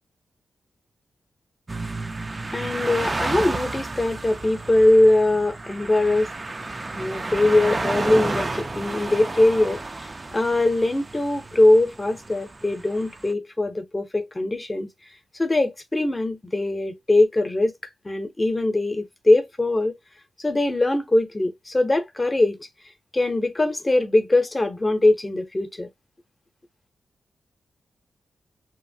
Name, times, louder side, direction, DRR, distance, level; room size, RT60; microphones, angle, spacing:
sound 1, 1.7-13.3, right 2 dB, 25° right, 0.4 m, -32 dB
voice 1, 2.5-6.3 6.9-14.9 15.4-17.7 18.0-20.0 20.4-22.7 23.1-25.9, left 2 dB, 20° left, 0.7 m, -21 dB
2.9 x 2.5 x 2.6 m
wide cardioid pair, 105°, 0 cm